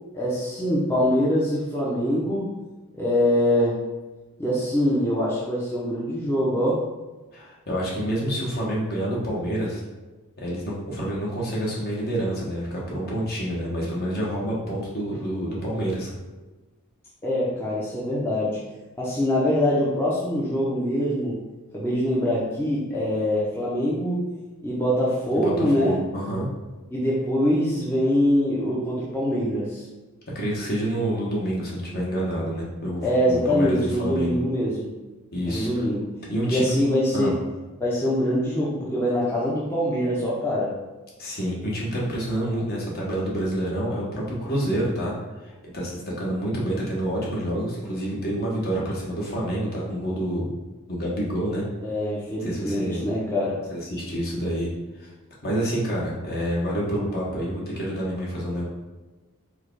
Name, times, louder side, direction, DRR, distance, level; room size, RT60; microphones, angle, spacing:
voice 1, 0.1-2.5 2.9-3.8 4.4-6.8 17.2-18.6 19.0-21.4 21.7-24.3 24.6-26.0 26.9-29.8 33.0-34.9 35.5-36.1 36.5-37.4 37.8-40.7 51.8-53.6, equal, 10° left, -7 dB, 0.7 m, -24 dB
voice 2, 7.3-9.8 10.4-16.1 25.3-26.5 30.3-34.4 35.3-35.8 36.3-36.7 37.1-37.3 41.2-45.1 45.4-50.5 50.9-51.6 52.4-53.0 53.7-54.7 55.0-55.1 55.4-58.7, right 1 dB, 45° left, -4 dB, 1.3 m, -28 dB
4.7 x 2.4 x 4.6 m, 1.2 s
head